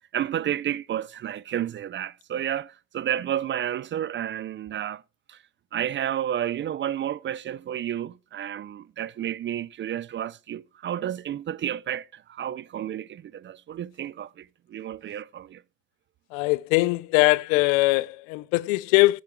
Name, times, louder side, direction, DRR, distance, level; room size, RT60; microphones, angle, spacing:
voice 1, 0.1-5.0 5.3-5.4 5.7-15.6, right 10 dB, 30° right, 0.4 m, -31 dB
voice 2, 16.3-19.2, left 21 dB, 85° left, 0.6 m, -21 dB
10.5 x 8.5 x 3.2 m
supercardioid pair, 95°, 40 cm